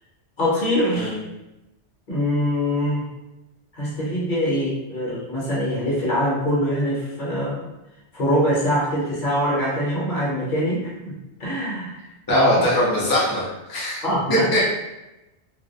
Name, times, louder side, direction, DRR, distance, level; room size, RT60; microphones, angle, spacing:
voice 1, 0.4-1.1 2.1-3.1 3.7-7.7 8.1-11.1 11.4-12.0 12.3-12.8 14.0-14.5, equal, 50° left, -6 dB, 0.9 m, -23 dB
voice 2, 12.3-14.0 14.5-14.7, left 1 dB, 35° left, -6 dB, 0.4 m, -21 dB
2.4 x 2.0 x 2.6 m, 0.96 s
omnidirectional pair, 1.2 m